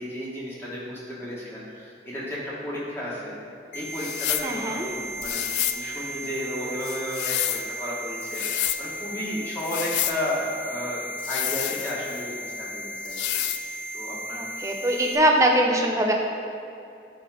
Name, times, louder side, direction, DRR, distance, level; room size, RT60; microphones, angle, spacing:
voice 1, 0.0-3.4 3.7-14.4, left 1 dB, 15° left, -7 dB, 1.9 m, -33 dB
sound 1, 3.7-15.1, right 1 dB, 45° left, 1.2 m, -35 dB
sound 2, 4.0-4.5 5.2-5.8 6.8-7.7 8.2-8.8 9.6-10.2 11.2-12.2 13.0-13.6, left 13 dB, 80° left, 0.4 m, -29 dB
voice 2, 4.4-4.9 14.4-16.1, right 1 dB, 15° right, 1 dB, 0.6 m, -22 dB
10.0 x 3.7 x 5.0 m, 2.5 s
head